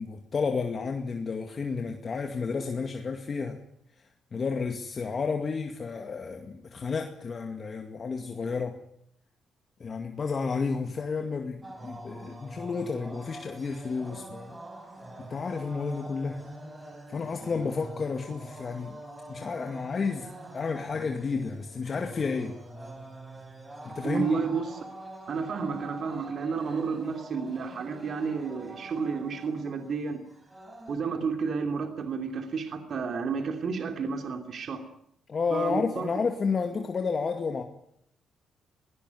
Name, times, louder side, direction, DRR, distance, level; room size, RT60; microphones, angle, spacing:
voice 1, 0.0-3.6 4.3-8.8 9.8-14.6 15.2-16.5 17.1-19.0 19.3-22.6 23.8-24.4 35.3-37.6, left 5 dB, 40° left, 2.2 m, -31 dB
sound 1, 11.6-31.0, right 1 dB, 20° right, 4.8 m, -45 dB
voice 2, 24.0-24.8 25.3-30.2 30.9-34.8 35.5-36.1, right 5 dB, 55° right, 2.8 m, -31 dB
21.5 x 18.5 x 9.5 m
cardioid pair, 90°, 0 cm